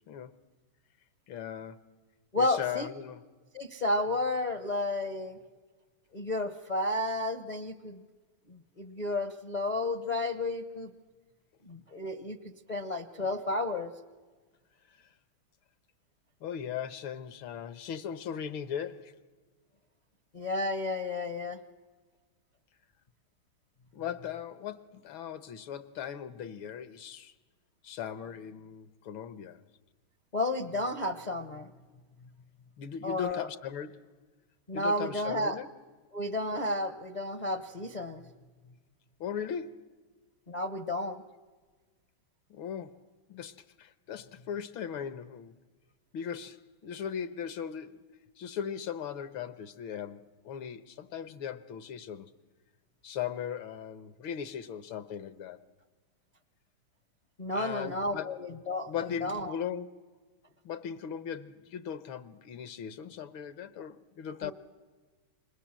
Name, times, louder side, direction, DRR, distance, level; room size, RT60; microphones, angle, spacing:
voice 1, 0.1-0.4 1.3-1.9 2.4-3.2 14.9-15.0 16.4-19.2 23.9-27.3 27.8-29.6 32.8-34.1 34.7-35.7 39.2-39.9 42.5-43.0 43.3-45.5 46.1-48.0 48.4-52.3 53.0-55.6 57.5-58.4 58.9-59.9 60.6-64.5, left 8 dB, 75° left, 1.8 m, -38 dB
voice 2, 2.3-2.9 3.5-5.4 6.1-8.0 8.5-10.9 11.6-13.9 20.3-21.6 30.3-31.7 33.0-33.5 34.7-35.6 36.1-38.2 40.5-41.2 57.4-59.5 64.4-64.5, left 2 dB, 35° left, 0.7 m, -32 dB
29.0 x 26.0 x 7.5 m
omnidirectional pair, 2.3 m